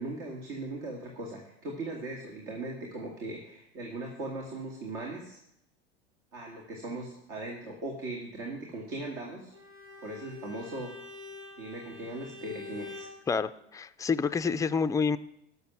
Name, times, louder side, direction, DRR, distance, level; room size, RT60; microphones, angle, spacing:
voice 1, 0.0-5.4 6.3-9.5 10.0-11.0 11.6-13.1, right 2 dB, 60° right, 0 dB, 2.5 m, -39 dB
Bowed string instrument, 9.5-13.2, left 3 dB, 85° right, 3.7 m, -46 dB
voice 2, 13.3-15.2, left 5 dB, 10° left, 11 dB, 0.4 m, -28 dB
12.0 x 6.7 x 6.3 m, 0.79 s
hypercardioid pair, 90°, 34 cm